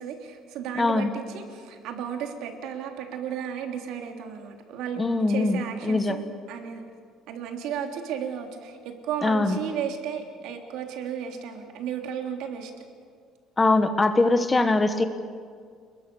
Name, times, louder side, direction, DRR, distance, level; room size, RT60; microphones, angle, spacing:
voice 1, 0.0-5.0 5.3-6.8 7.3-12.7, right 8 dB, 65° right, 4 dB, 3.2 m, -34 dB
voice 2, 0.8-1.1 5.0-6.2 9.2-9.6 13.6-15.0, left 2 dB, 15° left, 9 dB, 1.1 m, -22 dB
29.5 x 21.0 x 7.0 m, 2.1 s
cardioid pair, 170°, 0 cm